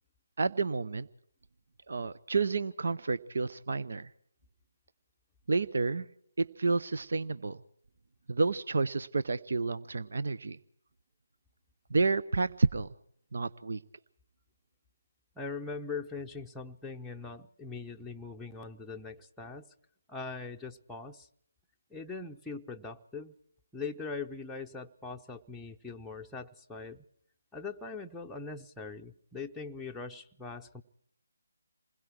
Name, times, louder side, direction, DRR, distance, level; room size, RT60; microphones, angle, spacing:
voice 1, 0.4-1.1 1.9-4.1 5.5-6.1 6.4-7.6 8.3-10.6 11.9-12.9 13.3-13.8, right 3 dB, 55° right, 15 dB, 0.8 m, -30 dB
voice 2, 15.4-19.7 20.1-21.3 21.9-23.3 23.7-27.0 27.5-30.8, left 4 dB, 5° left, -1 dB, 0.8 m, -41 dB
28.0 x 21.0 x 4.6 m, 0.67 s
figure-of-eight pair, 150°, 0 cm